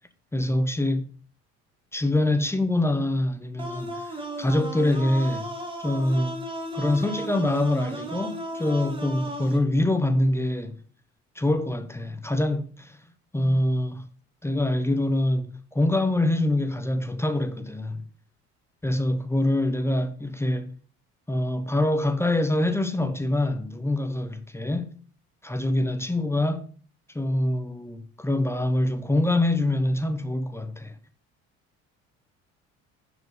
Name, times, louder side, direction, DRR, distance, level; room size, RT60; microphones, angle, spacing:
voice 1, 0.3-1.1 1.9-5.5 5.8-6.4 6.7-10.8 11.3-13.0 13.3-14.1 14.4-18.0 18.8-20.7 21.3-25.0 25.4-26.7 27.1-30.9, left 1 dB, 10° left, 1.0 m, -25 dB
sound 1, 3.6-9.6, right 1 dB, 15° right, 2.2 m, -35 dB
10.5 x 5.1 x 5.0 m
supercardioid pair, 95°, 30 cm